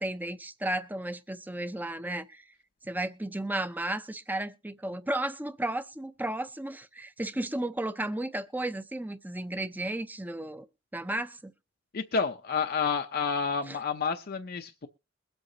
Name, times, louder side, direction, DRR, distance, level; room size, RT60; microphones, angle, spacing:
voice 1, 0.0-2.4 2.8-10.7 10.9-11.5 13.7-13.8, right 1 dB, 10° right, 0.6 m, -34 dB
voice 2, 11.9-14.9, left 5 dB, 50° left, 0.6 m, -29 dB
22.0 x 8.0 x 2.8 m
head